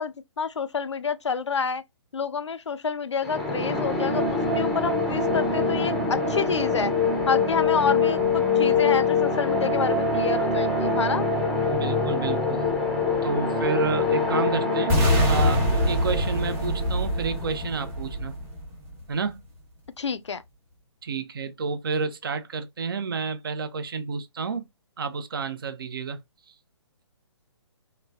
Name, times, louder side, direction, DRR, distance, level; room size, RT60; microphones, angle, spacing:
voice 1, 0.0-1.8 2.1-6.9 7.3-11.3 20.0-20.4, left 5 dB, 75° left, 0.4 m, -28 dB
sound 1, 3.2-17.9, left 3 dB, ahead, 0.5 m, -25 dB
voice 2, 11.7-12.6 13.2-15.0 15.3-18.3 19.1-19.4 21.0-24.7 25.0-26.2 26.5-26.6, right 4 dB, 50° right, 0.5 m, -30 dB
sound 2, 14.9-18.9, equal, 15° right, 0.9 m, -24 dB
3.0 x 2.1 x 2.3 m
figure-of-eight pair, 130°, 15 cm